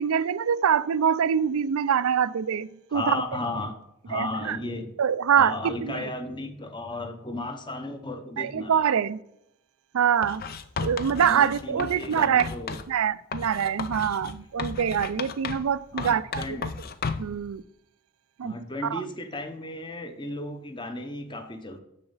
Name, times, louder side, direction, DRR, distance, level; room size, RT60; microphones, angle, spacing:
voice 1, 0.0-3.2 4.1-4.6 5.0-6.1 8.4-9.2 9.9-10.4 10.8-12.5 12.9-16.7 17.2-17.6 18.4-18.6 18.9-19.0, right 8 dB, 75° right, 0.4 m, -24 dB
voice 2, 2.9-3.8 4.0-4.9 5.4-8.9 11.0-12.8 15.9-16.7 18.4-21.8, left 2 dB, 20° left, 0.8 m, -34 dB
Writing, 10.2-12.9 13.3-15.7 16.0-17.4, left 5 dB, 45° left, 0.5 m, -34 dB
6.9 x 6.8 x 4.0 m
head